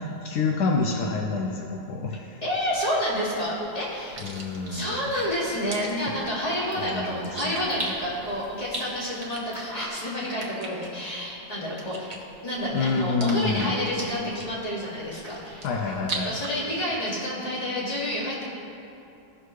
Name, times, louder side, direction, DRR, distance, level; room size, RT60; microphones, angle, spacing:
voice 1, 0.0-2.4 4.2-5.1 6.8-7.9 12.7-13.7 15.6-16.4, left 4 dB, 75° left, 1 dB, 1.2 m, -28 dB
voice 2, 2.4-4.3 4.7-12.1 12.4-15.7 16.2-18.5, equal, 25° left, -7 dB, 2.2 m, -29 dB
sound 1, 2.5-16.5, right 3 dB, 30° right, 0.9 m, -42 dB
sound 2, 3.7-9.9, right 1 dB, 15° right, 1.9 m, -41 dB
15.5 x 6.3 x 3.1 m, 2.7 s
omnidirectional pair, 1.8 m